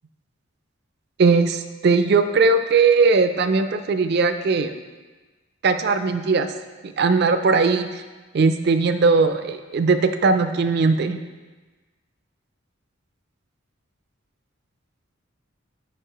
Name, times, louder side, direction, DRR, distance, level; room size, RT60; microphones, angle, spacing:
voice 1, 1.2-4.7 5.6-6.5 6.8-8.0 8.3-11.2, right 4 dB, 55° right, 9 dB, 0.4 m, -19 dB
9.3 x 4.9 x 3.0 m, 1.3 s
head